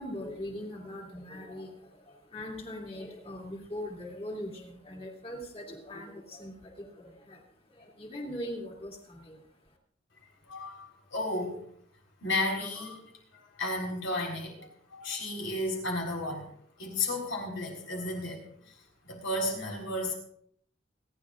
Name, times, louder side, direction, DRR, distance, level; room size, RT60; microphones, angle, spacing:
voice 1, 0.0-9.8, left 1 dB, 30° left, 0 dB, 2.6 m, -41 dB
voice 2, 10.5-11.6 12.2-13.0 13.3-14.6 14.9-16.5 16.8-18.7 19.0-20.1, left 2 dB, 85° left, 0 dB, 4.1 m, -33 dB
29.0 x 10.5 x 2.5 m, 0.66 s
head